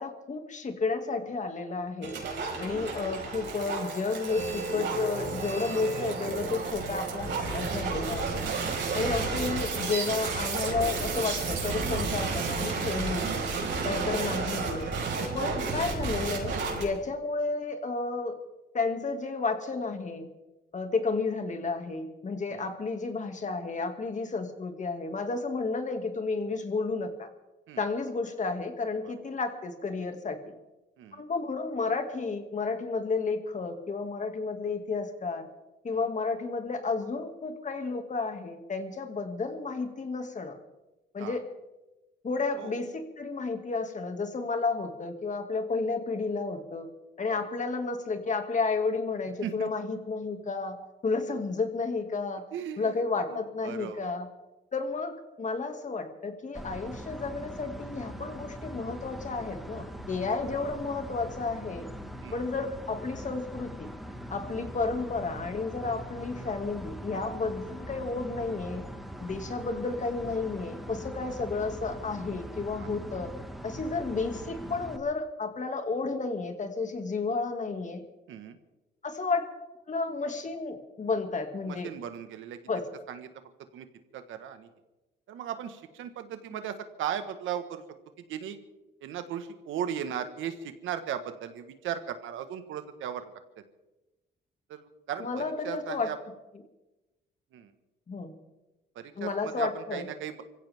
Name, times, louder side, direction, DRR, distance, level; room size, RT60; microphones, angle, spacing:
voice 1, 0.0-2.1 2.6-8.5 8.9-13.5 13.8-14.8 15.3-16.5 16.8-18.3 18.7-20.3 20.7-27.3 27.8-30.6 31.1-35.5 35.8-40.6 41.1-41.4 42.2-46.9 47.2-50.8 51.0-52.4 52.8-54.3 54.7-61.9 62.3-63.9 64.3-68.8 69.2-73.3 73.6-78.0 79.0-79.5 79.9-81.9 82.7-82.9 95.2-96.1 98.1-98.4 99.2-100.1, left 4 dB, 40° left, 6 dB, 2.3 m, -32 dB
sound 1, 2.0-16.8, right 4 dB, 65° right, 5.1 m, -32 dB
voice 2, 52.5-53.0 53.3-54.1 59.7-59.8 62.2-62.4 72.8-72.9 78.3-78.6 81.7-82.6 83.1-83.3 83.7-83.9 84.1-84.7 85.3-87.8 88.3-88.6 89.0-93.3 94.7-96.2 97.5-97.7 98.9-100.4, right 9 dB, 85° right, 9 dB, 1.5 m, -37 dB
sound 2, 56.5-75.0, equal, ahead, 1.7 m, -42 dB
25.0 x 16.0 x 3.6 m, 1.0 s
cardioid pair, 90°, 20 cm